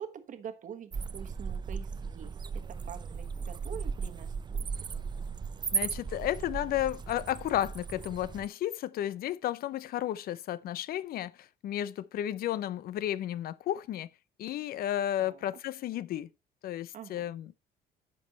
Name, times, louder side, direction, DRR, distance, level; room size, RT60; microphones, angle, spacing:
voice 1, 0.0-4.7 15.2-15.4 16.9-17.3, right 8 dB, 50° right, 1.3 m, -45 dB
sound 1, 0.9-8.5, right 5 dB, 25° right, 0.6 m, -36 dB
voice 2, 5.7-14.1 14.4-16.3 16.6-17.5, left 12 dB, 60° left, 0.6 m, -33 dB
9.7 x 5.4 x 4.1 m
cardioid pair, 110°, 17 cm